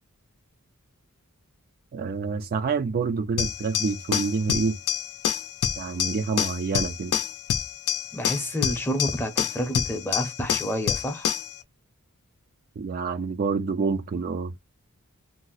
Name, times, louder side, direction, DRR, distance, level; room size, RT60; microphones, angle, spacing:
voice 1, 1.9-4.8 5.8-7.1 12.8-14.5, right 4 dB, 40° right, 0.3 m, -27 dB
sound 1, 3.4-11.5, left 8 dB, 80° left, 0.5 m, -28 dB
voice 2, 8.1-11.3, equal, 10° left, 0.6 m, -29 dB
2.6 x 2.1 x 3.9 m
head